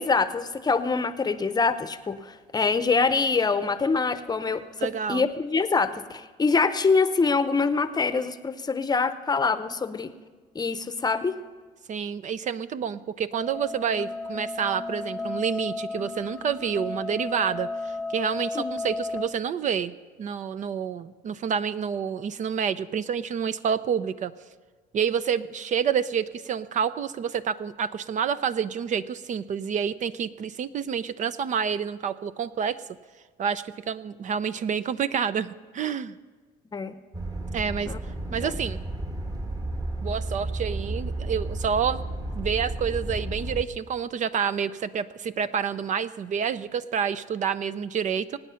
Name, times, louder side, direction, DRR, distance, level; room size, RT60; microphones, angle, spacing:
voice 1, 0.0-10.1 10.5-11.4 18.5-18.7 36.7-37.0 37.9-38.0 38.4-38.6, left 4 dB, 25° left, 12 dB, 0.7 m, -25 dB
voice 2, 4.8-5.3 11.9-24.3 24.9-32.8 33.4-36.2 37.5-37.9 38.3-38.8 40.0-42.0 42.4-48.4, right 7 dB, 45° right, 14 dB, 0.5 m, -28 dB
sound 1, 13.3-19.3, left 3 dB, 5° left, 1.1 m, -33 dB
sound 2, 37.1-43.6, right 1 dB, 20° right, 1.4 m, -32 dB
24.5 x 9.3 x 5.7 m, 1.4 s
cardioid pair, 110°, 17 cm